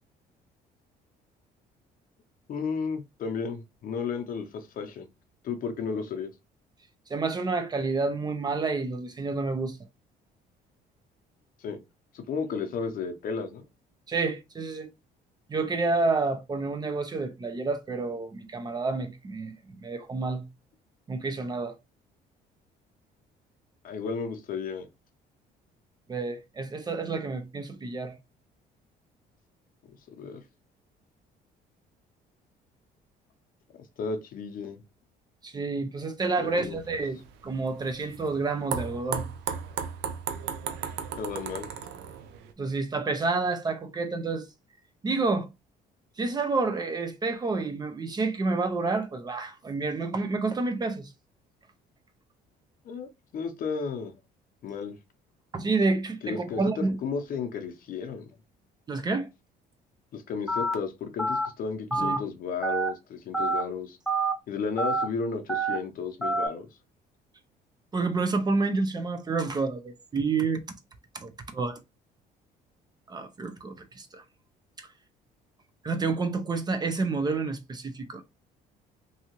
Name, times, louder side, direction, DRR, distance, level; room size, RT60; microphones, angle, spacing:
voice 1, 2.5-5.1 5.4-6.3 11.6-11.8 12.1-13.6 23.8-24.9 30.2-30.4 34.0-34.8 36.4-36.8 41.2-41.7 52.8-54.1 54.6-55.0 56.2-58.3 60.1-64.0 64.5-66.7, left 5 dB, 55° left, 0.7 m, -33 dB
voice 2, 7.1-9.8 14.1-14.9 15.5-20.5 21.1-21.8 26.1-28.2 35.4-39.3 42.6-44.5 45.0-45.5 46.2-51.1 55.5-57.0 58.9-59.3 61.9-62.2 67.9-70.6 71.1-71.8 73.1-74.2 74.8-74.9 75.8-78.2, right 3 dB, 25° right, 0.5 m, -29 dB
sound 1, 36.5-42.5, right 7 dB, 85° right, 0.5 m, -36 dB
Telephone, 60.5-60.7 61.2-61.5 61.9-62.2 62.6-62.9 63.3-63.6 64.1-64.3 64.8-65.0 65.5-65.8 66.2-66.5, right 3 dB, ahead, 0.8 m, -26 dB
2.7 x 2.4 x 2.9 m
cardioid pair, 110°, 17 cm